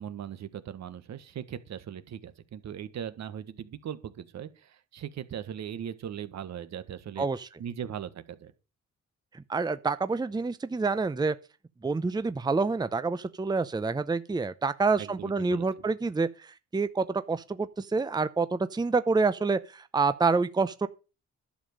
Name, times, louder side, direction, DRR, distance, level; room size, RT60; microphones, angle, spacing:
voice 1, 0.0-7.3 7.6-8.5 15.0-15.7, right 9 dB, 65° right, 1.4 m, -39 dB
voice 2, 7.2-7.5 9.3-11.4 11.8-20.9, right 4 dB, 15° right, 0.7 m, -27 dB
11.5 x 7.3 x 6.5 m
cardioid pair, 90°, 30 cm